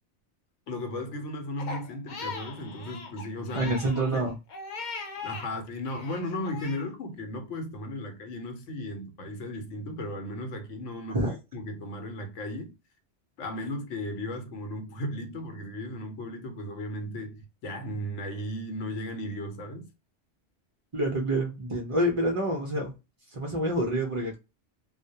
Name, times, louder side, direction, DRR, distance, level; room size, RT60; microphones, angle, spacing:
voice 1, 0.7-4.3 5.2-12.7 13.4-19.9, left 1 dB, 80° left, 1.0 m, -36 dB
Crying sobbing, 1.6-5.5 5.8-6.9, left 4 dB, 55° left, 0.5 m, -39 dB
voice 2, 3.5-4.3 11.1-11.3 20.9-22.9 23.3-24.4, right 1 dB, 55° right, 0.3 m, -27 dB
2.2 x 2.0 x 2.7 m
omnidirectional pair, 1.2 m